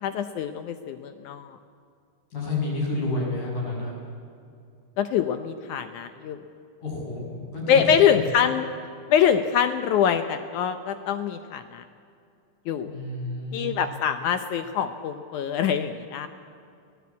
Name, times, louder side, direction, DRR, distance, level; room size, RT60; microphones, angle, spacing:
voice 1, 0.0-1.6 5.0-6.4 7.7-8.7 9.1-11.8 12.7-12.9 13.5-16.3, left 8 dB, 90° left, 9 dB, 1.7 m, -24 dB
voice 2, 2.3-3.9 6.8-7.9 12.8-13.8, left 2 dB, 50° left, -3 dB, 8.3 m, -30 dB
23.5 x 18.0 x 8.5 m, 2.4 s
omnidirectional pair, 4.7 m